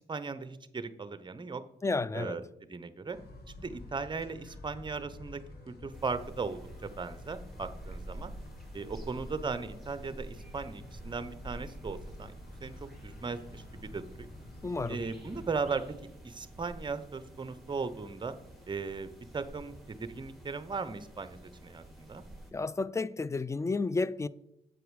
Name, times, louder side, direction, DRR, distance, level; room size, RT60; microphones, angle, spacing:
voice 1, 0.1-1.6 2.1-2.4 2.7-3.2 3.6-5.4 5.7-8.3 8.7-12.3 12.6-12.7 13.0-14.3 14.9-15.8 16.2-18.3 18.7-21.4 21.6-22.2, right 4 dB, 25° right, 0.7 m, -37 dB
voice 2, 1.8-2.4 14.6-15.0 22.5-24.3, left 3 dB, 15° left, 0.3 m, -31 dB
sound 1, 3.1-15.9, left 2 dB, 65° left, 1.4 m, -50 dB
sound 2, 5.9-22.5, right 1 dB, ahead, 2.1 m, -49 dB
7.9 x 4.8 x 4.8 m
supercardioid pair, 55°, 18 cm